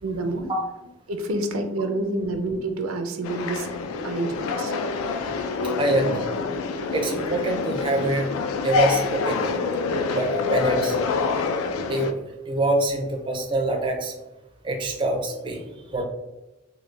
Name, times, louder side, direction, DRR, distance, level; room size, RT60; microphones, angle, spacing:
voice 1, 0.0-0.5 1.1-3.7 4.0-5.3, right 2 dB, 80° right, 6 dB, 0.5 m, -28 dB
sound 1, 3.2-12.1, left 4 dB, 80° left, 0.3 m, -26 dB
voice 2, 5.8-6.2 6.9-8.3 8.6-9.5 10.1-11.0 11.9-12.1 12.5-14.1 14.6-16.0, right 1 dB, 25° right, 2 dB, 0.4 m, -25 dB
3.1 x 2.2 x 3.1 m, 1.0 s
head